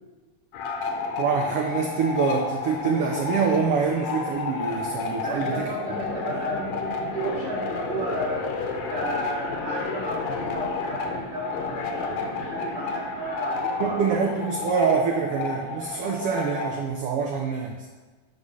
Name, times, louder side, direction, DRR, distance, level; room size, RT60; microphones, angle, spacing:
sound 1, 0.5-16.9, left 4 dB, 75° left, 2.1 m, -31 dB
voice 1, 1.2-5.6 13.8-17.9, right 6 dB, 80° right, 1 dB, 1.3 m, -25 dB
voice 2, 5.2-8.5 8.9-14.5, right 2 dB, 50° right, -5 dB, 2.4 m, -33 dB
9.5 x 3.2 x 6.2 m, 1.3 s
omnidirectional pair, 3.4 m